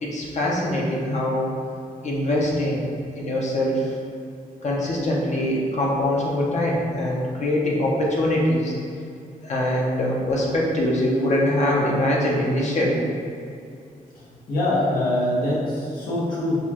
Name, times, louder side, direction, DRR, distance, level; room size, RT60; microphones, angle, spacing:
voice 1, 0.0-1.5 2.0-2.9 3.1-3.9 4.6-8.7 9.4-13.0, left 1 dB, 50° left, -3 dB, 0.8 m, -23 dB
voice 2, 14.1-16.6, left 1 dB, 80° left, -8 dB, 1.4 m, -24 dB
6.4 x 2.4 x 3.0 m, 2.4 s
wide cardioid pair, 140°, 15 cm